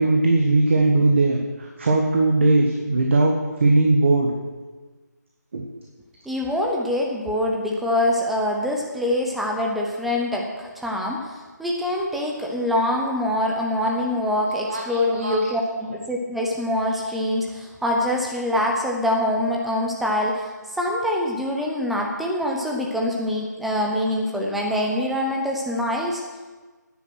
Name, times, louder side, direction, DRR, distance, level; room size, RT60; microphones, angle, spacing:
voice 1, 0.0-4.3 5.5-5.6 14.6-14.8 15.1-15.4, right 2 dB, 40° right, 1 dB, 1.5 m, -19 dB
voice 2, 6.3-26.2, left 1 dB, ahead, -1 dB, 0.7 m, -24 dB
12.0 x 10.0 x 6.3 m, 1.3 s
figure-of-eight pair, 165°, 10 cm